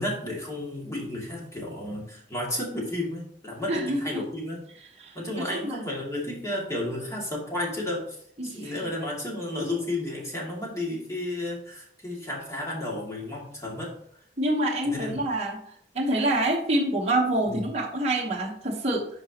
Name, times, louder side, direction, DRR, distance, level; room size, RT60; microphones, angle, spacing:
voice 1, 0.0-4.6 5.1-8.0 8.4-13.9 14.8-15.2 17.5-17.6, left 1 dB, 15° left, -3 dB, 2.3 m, -32 dB
voice 2, 3.7-4.2 5.0-5.8 8.4-8.7 14.4-15.6 15.9-19.1, right 1 dB, 35° right, -3 dB, 1.2 m, -27 dB
11.0 x 5.0 x 2.9 m, 0.63 s
head